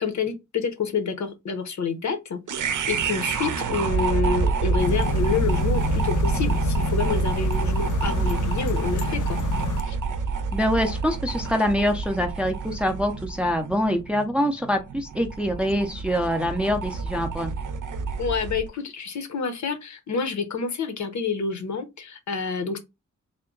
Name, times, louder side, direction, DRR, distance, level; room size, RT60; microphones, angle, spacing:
voice 1, 0.0-2.4 2.9-9.4 9.9-10.0 18.2-22.8, left 5 dB, 65° left, 0.8 m, -28 dB
sound 1, 2.5-18.7, right 4 dB, 85° right, 0.6 m, -27 dB
sound 2, 4.8-9.8, left 9 dB, 80° left, 0.5 m, -30 dB
voice 2, 10.5-17.5, equal, 5° right, 0.4 m, -25 dB
3.6 x 2.1 x 3.7 m
wide cardioid pair, 135°, 30 cm